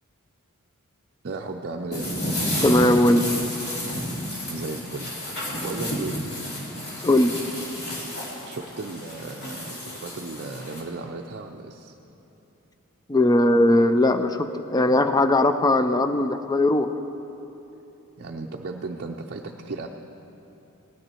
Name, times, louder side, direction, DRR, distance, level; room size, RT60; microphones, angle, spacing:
voice 1, 1.2-2.1 4.5-5.1 5.5-6.3 8.5-11.9 18.2-19.9, right 3 dB, 50° right, 1 dB, 0.5 m, -35 dB
sound 1, 1.9-10.8, left 1 dB, 50° left, 2.5 m, -31 dB
voice 2, 2.6-3.2 7.0-7.3 13.1-16.9, left 1 dB, 15° left, 9 dB, 0.4 m, -19 dB
18.0 x 9.7 x 4.4 m, 3.0 s
head